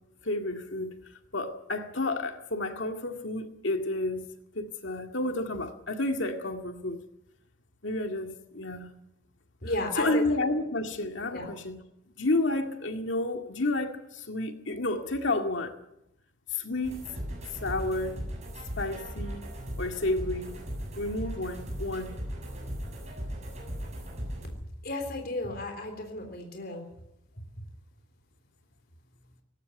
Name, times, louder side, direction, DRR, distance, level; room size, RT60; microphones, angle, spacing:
voice 1, 0.2-0.9 1.3-4.3 4.5-7.0 7.8-8.9 10.0-11.8 12.2-15.7 16.5-17.1 17.6-18.2 18.8-19.5 19.8-20.5 21.0-22.1, left 2 dB, 65° left, 2.1 m, -30 dB
voice 2, 9.6-10.2 11.3-11.5 24.8-26.9, left 1 dB, 50° left, 3.6 m, -33 dB
sound 1, 16.8-24.5, equal, 35° right, 7.3 m, -37 dB
19.0 x 16.5 x 9.7 m
head